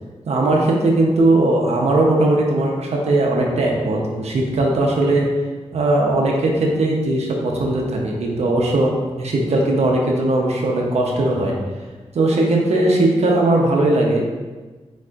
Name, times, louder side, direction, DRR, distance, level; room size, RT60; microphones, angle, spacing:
voice 1, 0.3-5.3 5.7-8.9 9.2-11.5 12.1-14.2, right 2 dB, 70° right, -1 dB, 0.8 m, -18 dB
4.6 x 4.2 x 2.5 m, 1.3 s
wide cardioid pair, 95°, 11 cm